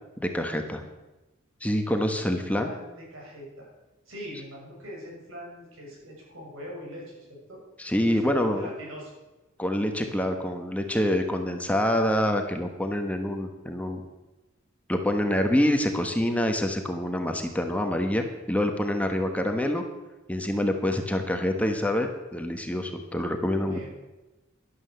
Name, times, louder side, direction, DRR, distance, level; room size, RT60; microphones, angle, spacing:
voice 1, 0.2-0.9 1.6-2.7 7.8-8.7 9.6-14.0 14.9-19.8 20.3-23.8, left 1 dB, 5° left, 4 dB, 1.2 m, -26 dB
voice 2, 2.4-3.7 4.1-7.6 8.0-9.1 15.3-15.9 23.6-23.9, equal, 80° right, -2 dB, 6.7 m, -42 dB
12.5 x 11.5 x 6.8 m, 1.1 s
head